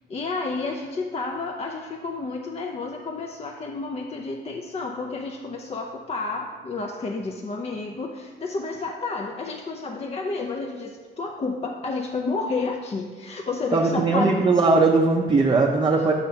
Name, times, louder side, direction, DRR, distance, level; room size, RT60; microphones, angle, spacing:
voice 1, 0.1-14.4, left 3 dB, 30° left, 2 dB, 0.5 m, -30 dB
voice 2, 13.7-16.1, right 3 dB, 25° right, 0 dB, 0.6 m, -19 dB
5.6 x 4.3 x 5.6 m, 1.5 s
cardioid pair, 90°, 20 cm